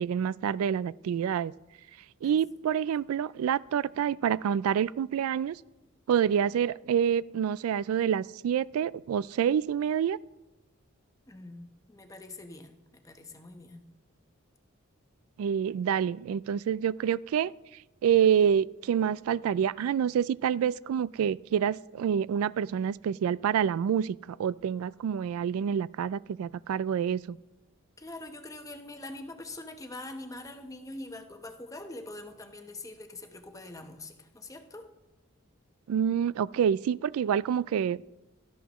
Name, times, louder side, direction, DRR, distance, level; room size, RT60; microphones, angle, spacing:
voice 1, 0.0-1.5 2.2-5.6 6.1-10.2 15.4-17.5 18.0-27.4 35.9-38.0, right 8 dB, 85° right, 18 dB, 0.3 m, -27 dB
voice 2, 11.3-13.9 28.0-34.9, left 2 dB, 15° left, 6 dB, 0.9 m, -44 dB
17.0 x 13.5 x 3.1 m, 1.0 s
head